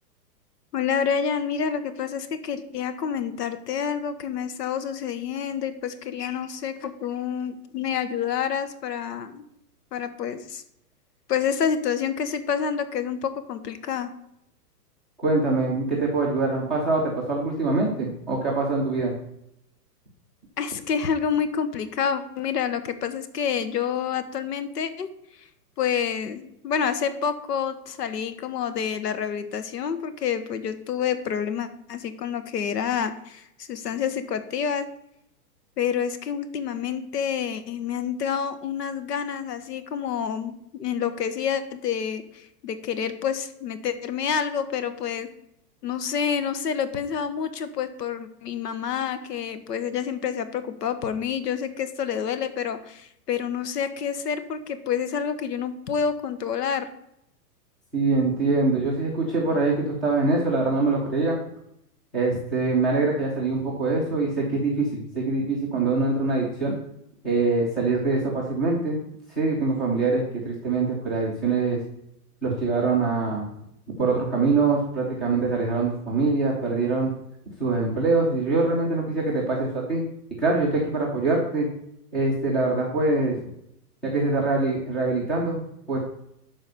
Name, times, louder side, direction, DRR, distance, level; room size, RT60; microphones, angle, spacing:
voice 1, 0.7-9.4 9.9-10.6 11.3-14.1 20.6-25.1 25.8-34.8 35.8-45.3 45.8-56.9, left 7 dB, 75° left, 11 dB, 1.4 m, -28 dB
voice 2, 15.2-19.1 57.9-61.4 62.1-66.7 67.2-69.0 69.3-71.8 72.4-73.5 74.0-77.1 77.6-80.0 80.4-81.7 82.1-83.4 84.0-86.0, right 3 dB, ahead, -5 dB, 0.5 m, -24 dB
11.5 x 4.2 x 6.7 m, 0.78 s
hypercardioid pair, 165°, 49 cm